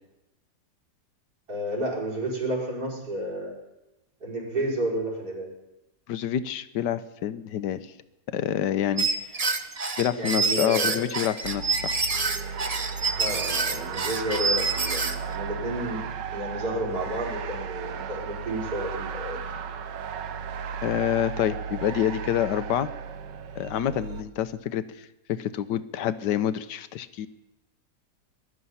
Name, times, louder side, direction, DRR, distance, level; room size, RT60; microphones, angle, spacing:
voice 1, 1.5-3.5 4.2-5.5 10.1-11.1 13.2-16.0 16.3-19.6, right 1 dB, 60° right, -5 dB, 5.5 m, -31 dB
voice 2, 6.1-7.8 8.3-9.1 10.0-12.0 20.8-22.9 23.6-27.3, left 10 dB, 80° left, 13 dB, 1.4 m, -27 dB
sound 1, 9.0-15.3, right 4 dB, 30° right, 0.7 m, -27 dB
sound 2, 11.4-24.2, right 6 dB, 90° right, 1.6 m, -35 dB
20.0 x 12.5 x 5.6 m, 0.99 s
omnidirectional pair, 1.9 m